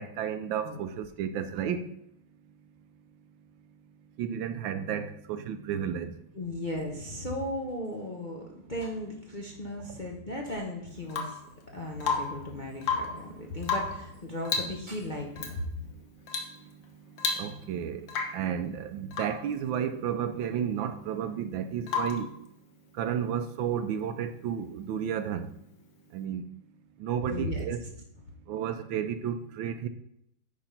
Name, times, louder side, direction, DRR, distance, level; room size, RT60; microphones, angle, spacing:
voice 1, 0.0-1.9 4.2-6.1 9.9-10.0 17.4-18.1 18.3-22.3 22.9-25.5 26.1-26.4 27.0-27.8 28.5-29.9, right 8 dB, 75° right, 1.3 m, -32 dB
voice 2, 6.3-11.4 11.7-15.7 27.3-27.7, left 1 dB, 35° left, 0.7 m, -36 dB
Rain / Water tap faucet / Drip, 11.1-11.5 12.0-12.5 12.8-13.2 13.6-14.1 14.4-14.8 15.4-15.6 16.3-16.6 16.8-16.9 17.2-17.7 18.1-18.5 19.1-19.4 21.9-22.3 24.2-24.3, left 5 dB, 65° left, 1.7 m, -32 dB
9.7 x 3.6 x 5.6 m
omnidirectional pair, 2.2 m